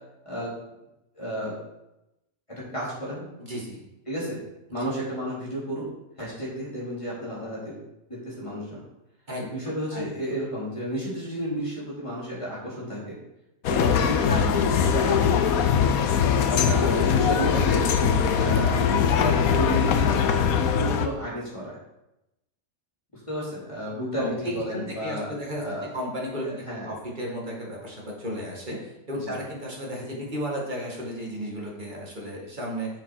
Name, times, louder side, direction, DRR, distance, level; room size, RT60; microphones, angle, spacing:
voice 1, 1.1-1.5 2.7-3.3 4.1-4.4 4.7-5.8 6.2-7.7 8.1-8.8 9.4-13.2 13.7-15.4 16.5-17.8 18.3-18.8 19.1-20.1 20.7-21.8 23.3-25.9 26.4-26.9 29.2-29.4, equal, 20° left, -7 dB, 3.8 m, -32 dB
voice 2, 3.4-3.8 9.3-9.5 9.9-10.0 18.7-19.0 24.2-25.6 25.9-32.9, equal, 35° right, -2 dB, 2.2 m, -34 dB
sound 1, 13.6-21.1, left 7 dB, 90° left, 1.2 m, -21 dB
7.3 x 7.0 x 5.0 m, 0.91 s
omnidirectional pair, 1.5 m